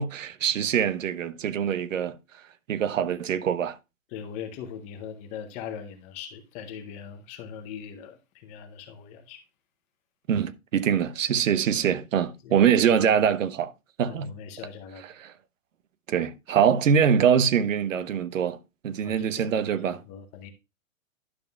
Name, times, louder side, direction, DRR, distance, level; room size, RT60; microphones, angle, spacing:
voice 1, 0.0-2.2 2.7-3.8 10.3-13.7 14.0-14.3 15.0-15.3 16.1-18.6 18.8-20.0, right 8 dB, 70° right, 0.9 m, -24 dB
voice 2, 4.1-9.4 12.4-12.6 14.1-15.0 19.0-20.5, left 8 dB, 15° left, 0.6 m, -40 dB
11.5 x 6.7 x 2.2 m
hypercardioid pair, 145°, 40 cm